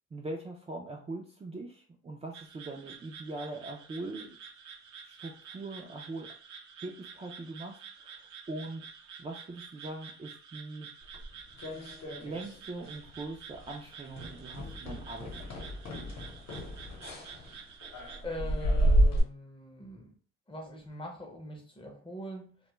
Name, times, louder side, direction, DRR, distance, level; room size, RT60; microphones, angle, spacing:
voice 1, 0.1-4.4 5.0-6.3 6.8-8.1 8.5-8.9 9.2-10.9 12.2-15.6, right 2 dB, 20° right, 0 dB, 0.4 m, -41 dB
sound 1, 2.3-18.2, right 6 dB, 70° right, 0.6 m, -49 dB
sound 2, 11.1-12.6 12.8-13.2 13.5-13.7 14.1-19.2, right 1 dB, 60° left, 0.9 m, -31 dB
voice 2, 18.2-20.1 20.5-22.6, left 1 dB, 15° left, 2 dB, 0.6 m, -42 dB
2.2 x 2.1 x 3.0 m, 0.43 s
cardioid pair, 90°, 30 cm